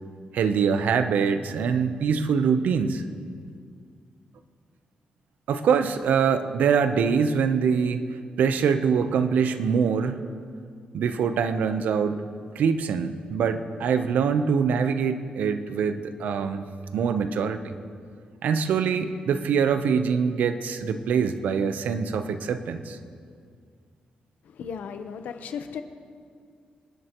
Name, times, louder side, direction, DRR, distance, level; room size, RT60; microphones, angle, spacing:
voice 1, 0.3-3.0 5.5-8.0 8.4-10.2 10.9-12.2 12.5-16.6 16.9-17.7 18.4-23.0, right 6 dB, 85° right, 9 dB, 0.8 m, -24 dB
voice 2, 24.4-25.8, left 7 dB, 85° left, 8 dB, 0.9 m, -35 dB
27.0 x 11.0 x 3.1 m, 2.2 s
cardioid pair, 125°, 3 cm